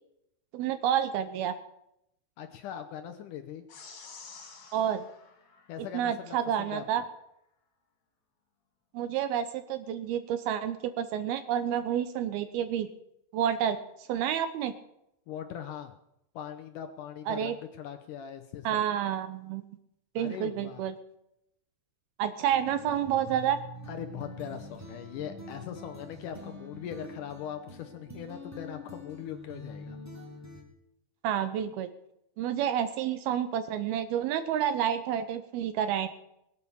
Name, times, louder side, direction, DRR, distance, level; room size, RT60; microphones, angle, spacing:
voice 1, 0.5-1.5 4.7-5.0 5.9-7.0 8.9-12.9 13.3-14.7 17.3-17.6 18.6-19.7 20.2-21.0 22.2-23.6 31.2-31.9 32.4-36.1, right 9 dB, 75° right, 10 dB, 2.5 m, -29 dB
voice 2, 2.4-3.6 5.7-6.8 15.3-15.9 16.3-18.8 20.2-20.9 23.9-30.0, left 9 dB, 80° left, 7 dB, 1.8 m, -40 dB
sound 1, 3.7-6.4, left 4 dB, 50° left, 3.6 m, -50 dB
sound 2, 22.5-30.6, left 1 dB, 5° right, 2.3 m, -45 dB
21.5 x 8.7 x 7.1 m, 0.82 s
omnidirectional pair, 4.8 m